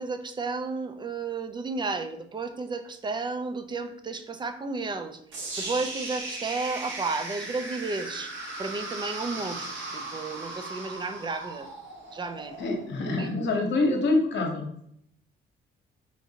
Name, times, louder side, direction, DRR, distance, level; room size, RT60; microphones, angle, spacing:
voice 1, 0.0-5.2 5.6-8.3 8.6-11.7 12.1-12.5 13.2-13.3, right 3 dB, 25° right, 8 dB, 0.4 m, -32 dB
sound 1, 5.3-13.4, right 2 dB, 70° right, 1.1 m, -37 dB
voice 2, 12.6-14.8, left 2 dB, 65° left, 2 dB, 0.9 m, -26 dB
4.4 x 2.6 x 2.8 m, 0.69 s
cardioid pair, 90°, 20 cm